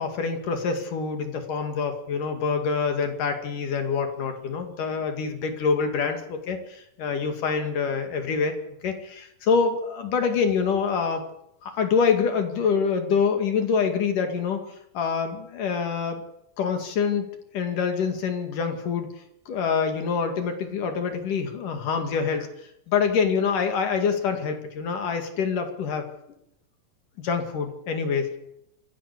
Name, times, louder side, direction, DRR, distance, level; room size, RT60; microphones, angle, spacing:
voice 1, 0.0-8.5 8.8-11.2 11.6-14.6 14.9-16.2 16.6-17.3 17.5-19.1 19.5-22.5 22.9-26.0 27.2-28.4, left 5 dB, 65° left, 6 dB, 3.7 m, -26 dB
27.0 x 11.5 x 8.5 m, 0.78 s
omnidirectional pair, 4.2 m